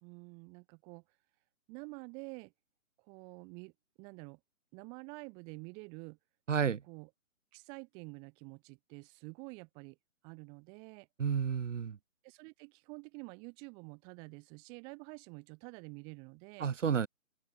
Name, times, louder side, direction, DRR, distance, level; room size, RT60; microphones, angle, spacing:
voice 1, 0.0-1.0 1.7-2.5 3.0-3.7 4.0-4.4 4.7-6.2 6.6-7.1 7.5-10.0 10.2-11.1 12.2-16.7, right 34 dB, 10° right, 0.7 m, -49 dB
voice 2, 6.5-6.8 11.2-12.0 16.6-17.1, right 7 dB, 65° right, 1.2 m, -31 dB
figure-of-eight pair, 140°, 40 cm